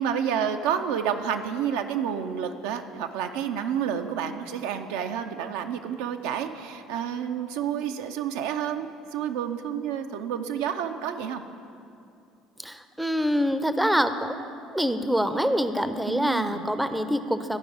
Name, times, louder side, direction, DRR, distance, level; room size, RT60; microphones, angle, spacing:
voice 1, 0.0-11.4 16.1-16.7, right 8 dB, 60° right, 7 dB, 0.3 m, -29 dB
voice 2, 12.6-17.6, equal, 5° right, 10 dB, 0.5 m, -26 dB
11.5 x 5.1 x 4.9 m, 2.6 s
figure-of-eight pair, 60°, 0 cm